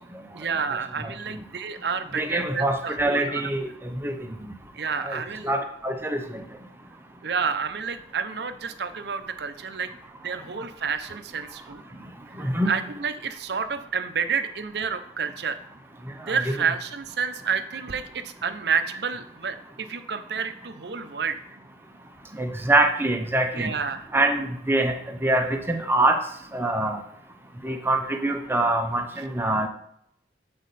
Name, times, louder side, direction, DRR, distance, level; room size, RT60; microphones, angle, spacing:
voice 1, 0.3-3.4 4.7-5.5 7.2-9.9 10.2-11.8 12.3-15.6 16.2-21.4 23.5-24.1, right 6 dB, 65° right, 10 dB, 0.6 m, -30 dB
voice 2, 2.2-4.1 5.0-6.2 12.4-12.7 16.3-16.5 22.4-23.7 24.1-24.9 25.2-26.2 26.5-27.0 27.6-29.7, right 2 dB, 10° right, 4 dB, 0.7 m, -24 dB
8.3 x 4.3 x 4.1 m, 0.74 s
head